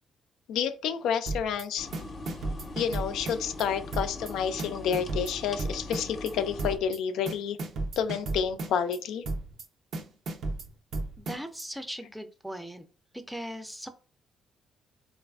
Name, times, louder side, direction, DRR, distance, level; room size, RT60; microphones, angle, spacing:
voice 1, 0.5-1.9 2.8-7.6 8.0-9.3, left 8 dB, 85° left, 0.3 m, -29 dB
sound 1, 1.3-1.6 1.9-3.7 3.9-4.3 4.6-6.3 6.6-7.0 7.3-9.0 9.3-9.7 9.9-11.7, right 2 dB, 65° right, 0.5 m, -34 dB
sound 2, 1.8-6.8, left 2 dB, 45° left, 0.6 m, -41 dB
voice 2, 11.2-12.8 13.1-13.9, equal, 5° right, 0.5 m, -39 dB
3.2 x 2.4 x 2.3 m
cardioid pair, 90°, 0 cm